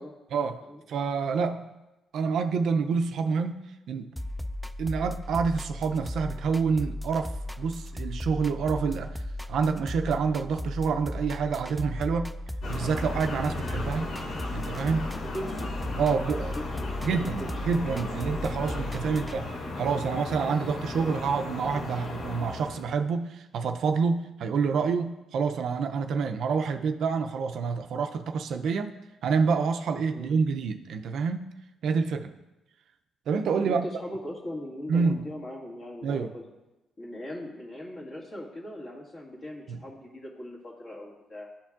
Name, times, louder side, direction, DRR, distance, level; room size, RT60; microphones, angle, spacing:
voice 1, 0.3-0.6 0.9-1.7 2.1-3.6 3.9-4.1 4.8-7.3 7.6-9.2 9.5-12.4 12.7-14.0 14.5-15.1 16.0-16.5 17.0-28.9 29.2-31.5 31.8-32.3 33.3-33.9 34.9-35.3 36.0-36.3 39.7-39.8, right 5 dB, 70° right, 7 dB, 0.4 m, -27 dB
sound 1, 4.2-19.4, left 1 dB, ahead, 0.3 m, -36 dB
sound 2, 12.6-22.9, left 2 dB, 65° left, 1.2 m, -36 dB
voice 2, 15.2-15.7 16.6-17.6 19.0-19.2 30.1-30.3 33.6-36.4 37.0-41.5, left 1 dB, 40° left, -3 dB, 2.0 m, -39 dB
12.5 x 4.4 x 2.4 m, 1.0 s
cardioid pair, 90°, 0 cm